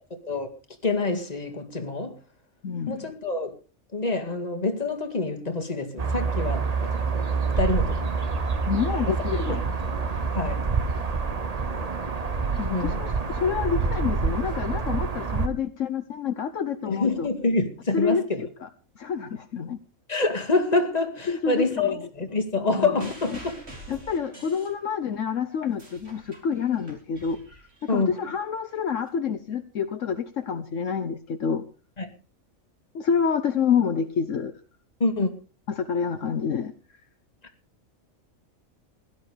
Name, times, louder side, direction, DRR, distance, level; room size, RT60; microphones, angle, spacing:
voice 1, 0.8-2.2 2.9-3.5 3.9-6.9 7.6-8.3 9.0-9.6 10.3-10.6 12.7-13.0 16.8-18.4 20.1-23.5 27.9-28.1 32.0-32.1 35.0-35.3, left 3 dB, 30° left, 2.1 m, -26 dB
voice 2, 2.6-3.0 8.7-9.6 12.6-17.3 17.9-18.7 19.0-19.8 21.3-22.0 22.6-23.4 23.9-27.4 27.9-31.6 32.9-34.5 35.7-36.7, left 6 dB, 70° left, 1.3 m, -28 dB
sound 1, 6.0-15.5, right 5 dB, 30° right, 1.1 m, -27 dB
sound 2, 23.0-25.2 25.6-28.2 29.1-29.2, right 1 dB, 50° right, 4.9 m, -46 dB
16.5 x 11.5 x 5.0 m
omnidirectional pair, 1.4 m